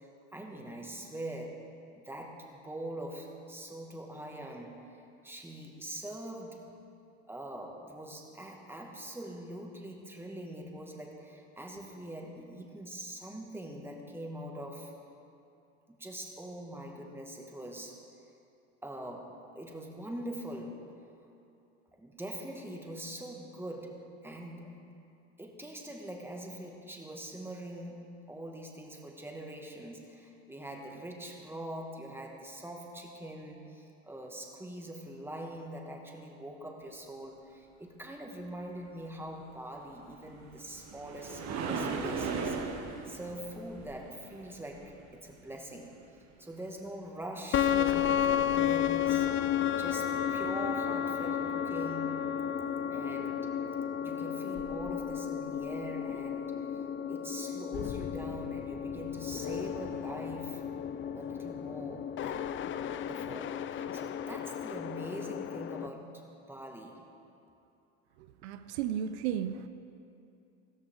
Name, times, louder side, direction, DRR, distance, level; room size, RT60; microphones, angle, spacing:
voice 1, 0.0-1.6 1.9-6.7 7.3-14.9 15.9-18.0 18.8-20.9 21.9-24.9 25.4-42.6 43.1-46.0 46.4-49.3 49.7-52.2 52.9-53.5 54.0-56.8 57.1-60.6 61.2-62.5 63.0-66.1 66.5-67.0, right 1 dB, 5° right, 0 dB, 2.1 m, -43 dB
sound 1, 40.1-45.3 49.2-49.3 49.9-50.0, right 4 dB, 55° right, 1.6 m, -37 dB
sound 2, 47.5-65.9, left 9 dB, 35° left, 0.5 m, -33 dB
voice 2, 68.4-69.7, right 9 dB, 85° right, 10 dB, 0.7 m, -33 dB
15.0 x 14.0 x 3.9 m, 2.7 s
supercardioid pair, 90°, 33 cm